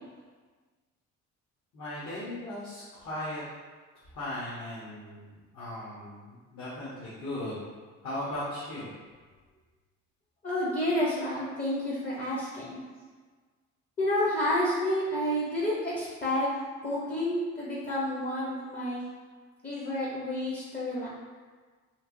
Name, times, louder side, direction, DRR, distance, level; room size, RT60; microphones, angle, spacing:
voice 1, 1.7-3.4 4.1-7.7 8.0-8.9, left 1 dB, 60° left, -9 dB, 1.0 m, -37 dB
voice 2, 10.4-12.8 14.0-16.5 16.8-19.0 19.6-21.1, left 1 dB, 30° left, -5 dB, 0.6 m, -30 dB
3.2 x 2.8 x 2.5 m, 1.4 s
cardioid pair, 90°, 30 cm